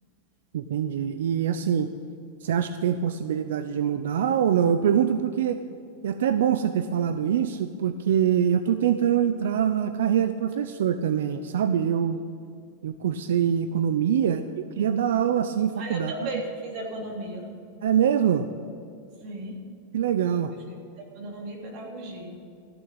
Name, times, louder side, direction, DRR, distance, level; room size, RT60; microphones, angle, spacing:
voice 1, 0.5-1.9 2.4-5.6 6.0-12.2 12.8-16.1 17.8-18.5 19.9-20.5, right 9 dB, 85° right, 10 dB, 0.6 m, -24 dB
voice 2, 15.8-17.5 19.2-19.6 20.7-22.3, right 1 dB, 40° right, -1 dB, 3.3 m, -36 dB
15.0 x 7.0 x 9.0 m, 2.4 s
supercardioid pair, 165°, 0 cm